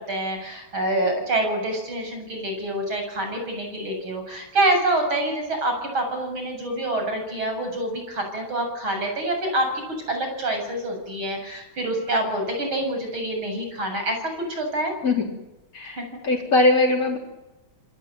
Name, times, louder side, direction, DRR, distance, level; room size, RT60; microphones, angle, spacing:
voice 1, 0.0-9.8 10.1-14.9 15.9-16.2, right 1 dB, 70° right, 4 dB, 8.5 m, -26 dB
voice 2, 15.7-17.2, left 2 dB, 40° left, -2 dB, 4.7 m, -21 dB
27.5 x 20.0 x 9.3 m, 0.99 s
omnidirectional pair, 2.3 m